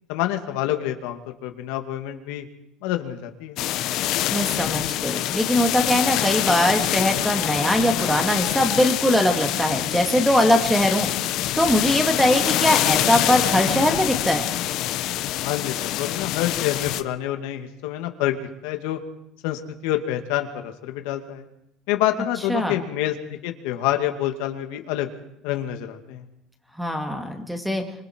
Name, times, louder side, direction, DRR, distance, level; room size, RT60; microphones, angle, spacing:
voice 1, 0.1-2.5 2.8-3.6 15.4-18.4 18.6-19.0 19.4-21.5 21.9-25.1 25.4-26.2, left 13 dB, 85° left, 5 dB, 2.3 m, -27 dB
sound 1, 3.6-17.0, left 14 dB, 55° left, 1.0 m, -25 dB
voice 2, 4.3-11.1 11.6-14.5 22.5-22.8 26.8-27.8, left 1 dB, ahead, 4 dB, 2.3 m, -21 dB
26.0 x 25.5 x 4.6 m, 0.77 s
cardioid pair, 160°, 0 cm